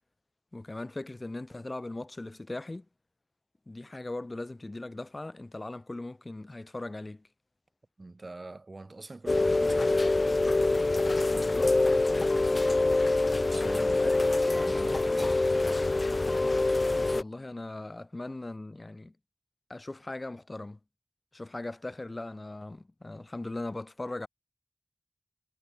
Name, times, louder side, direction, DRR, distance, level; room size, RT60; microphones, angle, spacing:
voice 1, 0.5-2.9 3.7-7.3 11.3-11.8 13.6-14.2 15.1-15.2 17.1-19.1 19.7-20.8 21.3-24.3, left 2 dB, 60° left, 3.5 m, -39 dB
voice 2, 8.0-10.2 13.5-15.5, right 2 dB, 85° right, 1.3 m, -44 dB
Rain, 9.3-17.2, left 2 dB, 80° left, 0.5 m, -25 dB
wide cardioid pair, 45°, 0 cm